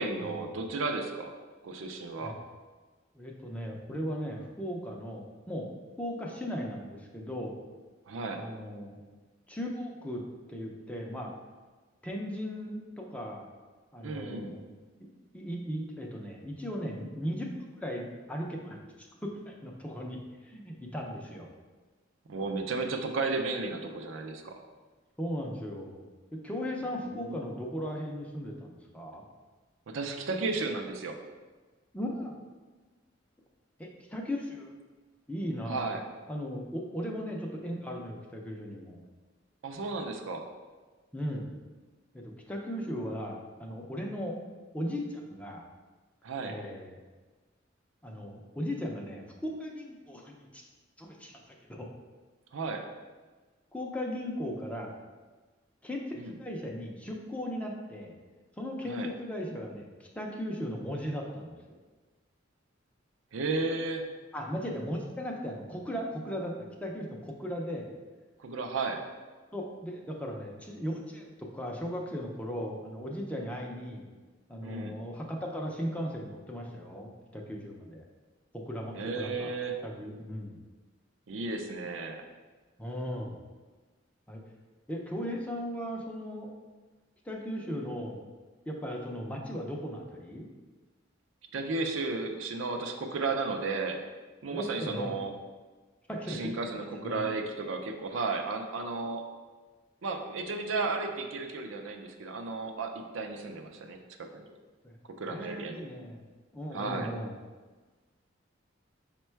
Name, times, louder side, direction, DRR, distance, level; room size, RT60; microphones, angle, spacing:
voice 1, 0.0-1.3 1.6-2.3 8.1-8.4 14.0-14.5 22.3-24.6 27.0-27.4 29.9-31.2 35.7-36.0 39.6-40.5 46.2-46.6 52.5-52.8 56.2-56.3 58.9-59.1 63.3-64.0 68.4-69.0 74.6-75.0 78.9-79.8 81.3-82.2 91.5-94.0 94.4-95.3 96.3-99.2 100.0-104.4 105.2-105.8 106.7-107.1, right 3 dB, 80° right, 4 dB, 0.5 m, -34 dB
voice 2, 3.1-5.7 6.0-7.6 8.3-9.0 9.5-10.2 10.5-11.3 12.0-13.5 13.9-14.6 15.0-15.1 15.3-20.2 20.4-21.5 25.2-26.0 26.3-29.2 31.9-32.4 33.8-34.8 35.3-35.9 36.3-39.0 41.1-41.5 42.1-44.4 44.7-45.6 46.4-47.0 48.0-50.6 51.0-51.3 51.7-51.9 53.7-54.9 55.8-58.1 58.6-61.8 64.3-67.9 69.5-74.1 74.5-78.0 78.5-79.5 79.8-80.6 82.8-83.4 84.3-84.4 84.9-86.5 87.3-88.3 88.7-90.5 94.5-95.2 96.1-96.4 97.0-97.2 104.8-105.0 105.3-106.2 106.5-107.3, equal, 5° left, 0 dB, 0.5 m, -37 dB
5.2 x 2.2 x 4.4 m, 1.3 s
head